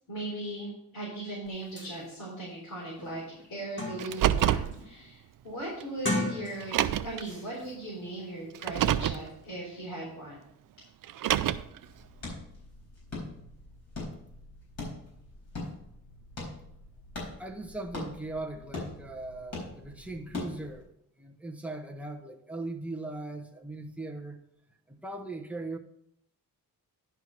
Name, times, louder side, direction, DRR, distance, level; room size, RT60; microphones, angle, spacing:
voice 1, 0.1-3.2 3.5-10.4, right 1 dB, 70° left, 4.0 m, -38 dB
sound 1, 1.5-1.6 1.8-1.9 2.5-2.6 3.0-4.3 4.7-5.1 5.9-6.9 7.2-7.5, left 1 dB, 35° left, 2.0 m, -35 dB
Car, 4.0-4.7 5.8-5.9 6.6-7.2 8.5-9.2 11.0-11.8, right 11 dB, 65° right, 0.5 m, -26 dB
sound 2, 11.8-20.8, left 2 dB, 50° left, 4.1 m, -42 dB
voice 2, 17.4-20.9 21.2-24.4 24.9-25.8, right 2 dB, 5° right, 0.9 m, -39 dB
11.0 x 4.6 x 5.8 m
wide cardioid pair, 125°, 35 cm